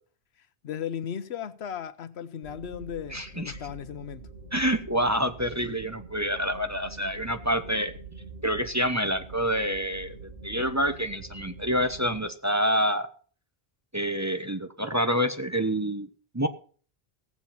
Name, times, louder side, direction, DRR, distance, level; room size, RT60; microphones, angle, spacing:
voice 1, 0.6-4.3, left 9 dB, 80° left, 1.0 m, -36 dB
sound 1, 2.4-12.2, right 3 dB, 70° right, 3.2 m, -45 dB
voice 2, 3.1-3.6 4.5-7.9 8.4-10.1 10.4-13.1 13.9-16.1 16.3-16.5, equal, 15° right, 0.8 m, -27 dB
17.5 x 7.3 x 5.7 m
omnidirectional pair, 1.1 m